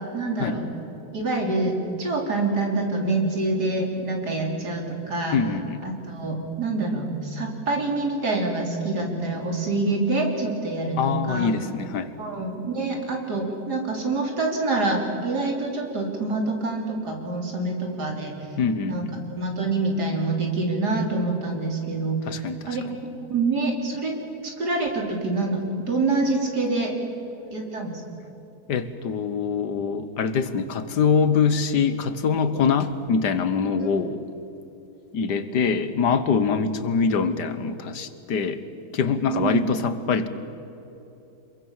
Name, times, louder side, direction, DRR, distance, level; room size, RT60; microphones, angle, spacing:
voice 1, 0.1-0.7 1.1-1.7 2.0-5.4 5.8-11.5 12.2-18.4 18.8-22.8 23.3-24.2 24.4-25.6 25.9-27.0 27.5-27.9 33.8-33.9 39.3-39.7, right 3 dB, 75° right, 1 dB, 4.0 m, -26 dB
voice 2, 5.3-5.9 11.0-12.1 18.6-19.3 22.3-22.8 28.7-34.2 35.1-38.6 38.9-40.3, left 5 dB, 85° left, 12 dB, 1.8 m, -24 dB
26.5 x 22.5 x 7.3 m, 3.0 s
omnidirectional pair, 1.8 m